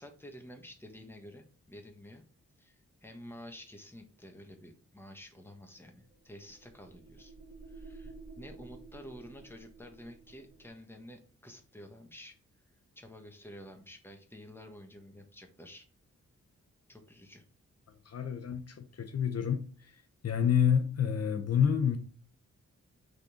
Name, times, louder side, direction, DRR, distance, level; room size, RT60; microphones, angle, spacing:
voice 1, 0.0-2.2 2.6-7.3 7.7-12.4 12.9-15.9 16.9-17.4, left 1 dB, 10° left, 1.4 m, -50 dB
sound 1, 5.8-10.8, right 3 dB, 80° right, 2.0 m, -51 dB
voice 2, 18.1-19.6 20.2-22.0, left 8 dB, 60° left, 0.8 m, -28 dB
6.5 x 3.9 x 4.9 m
wide cardioid pair, 120°, 29 cm